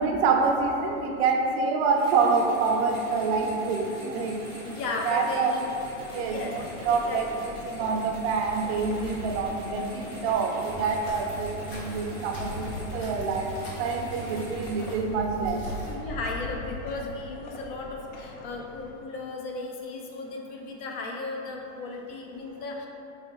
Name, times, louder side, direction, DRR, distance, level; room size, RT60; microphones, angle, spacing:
voice 1, 0.0-4.4 5.1-5.5 6.1-7.3 7.7-15.7, right 4 dB, 50° right, 1 dB, 0.5 m, -26 dB
sound 1, 1.9-15.0, equal, 10° left, 0.8 m, -43 dB
voice 2, 4.6-5.7 6.2-6.5 6.9-7.5 15.7-22.9, left 3 dB, 45° left, 0 dB, 0.4 m, -35 dB
sound 2, 5.6-18.9, left 3 dB, 85° left, 0.7 m, -43 dB
sound 3, 10.6-15.9, right 2 dB, 65° left, 1.2 m, -40 dB
3.6 x 3.0 x 3.0 m, 2.8 s
supercardioid pair, 150°, 42 cm